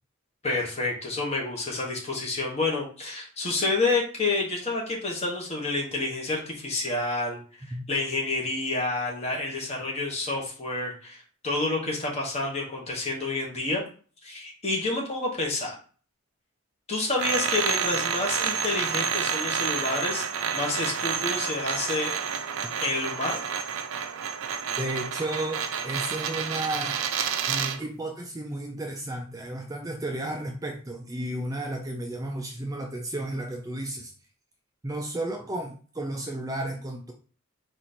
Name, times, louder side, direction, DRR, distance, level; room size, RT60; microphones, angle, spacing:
voice 1, 0.4-7.4 7.7-13.8 14.2-15.8 16.9-20.3 20.5-22.1 22.8-23.4, left 2 dB, 30° left, -1 dB, 1.3 m, -29 dB
sound 1, 17.2-27.8, right 7 dB, 75° right, 0.5 m, -29 dB
voice 2, 24.8-27.0 27.5-34.1 34.8-37.1, right 1 dB, 15° right, 2 dB, 0.4 m, -33 dB
4.3 x 2.6 x 4.2 m, 0.40 s
head